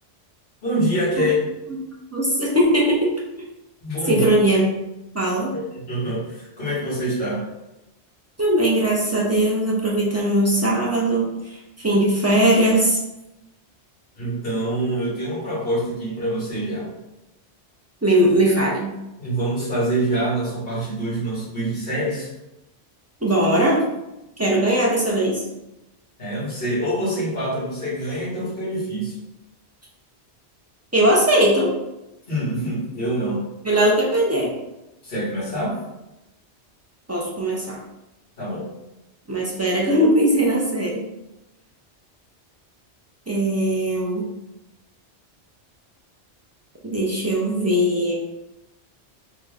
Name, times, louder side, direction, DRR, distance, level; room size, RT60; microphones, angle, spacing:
voice 1, 0.6-1.4 3.8-4.3 5.5-7.4 14.2-16.9 19.2-22.3 26.2-29.1 32.3-33.4 35.0-35.8 38.4-38.7, right 1 dB, 55° left, -8 dB, 1.6 m, -25 dB
voice 2, 2.1-3.1 4.1-4.7 5.1-5.5 8.4-13.0 18.0-18.9 23.2-23.8 24.4-25.4 30.9-31.7 33.6-34.5 37.1-37.8 39.3-41.0 43.3-44.3 46.8-48.1, right 1 dB, 25° right, -4 dB, 0.3 m, -19 dB
3.6 x 2.1 x 3.4 m, 0.95 s
omnidirectional pair, 1.2 m